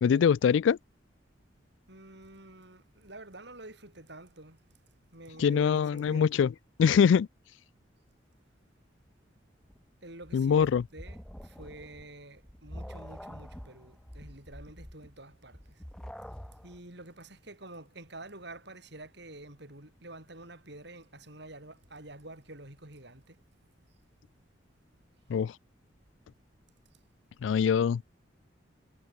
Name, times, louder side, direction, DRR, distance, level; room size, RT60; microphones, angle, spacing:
voice 1, 0.0-0.8 5.4-6.5 6.8-7.3 10.3-10.8 25.3-25.5 27.4-28.0, left 7 dB, 75° left, 0.3 m, -23 dB
voice 2, 1.9-4.6 5.1-6.3 10.0-11.2 11.4-15.8 16.6-23.4, right 2 dB, 60° right, 7.3 m, -48 dB
sound 1, 9.7-16.8, equal, 5° left, 0.9 m, -46 dB
head